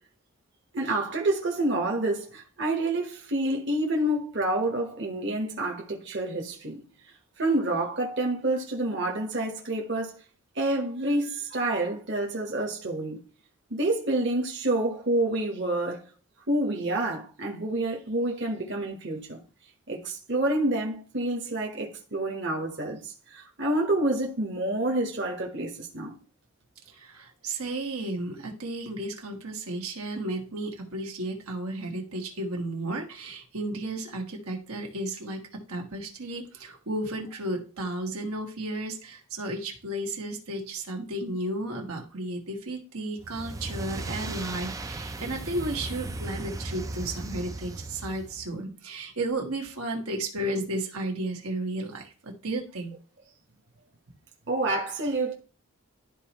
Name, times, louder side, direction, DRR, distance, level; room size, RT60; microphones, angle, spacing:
voice 1, 0.7-6.8 7.4-10.2 10.5-13.2 13.7-16.0 16.5-19.4 19.9-26.1 54.5-55.3, right 1 dB, 50° right, 1.3 m, -28 dB
voice 2, 26.9-52.9, right 1 dB, 80° right, 1.6 m, -33 dB
sound 1, 43.2-48.5, right 2 dB, 15° right, 0.4 m, -36 dB
12.0 x 4.2 x 3.0 m
head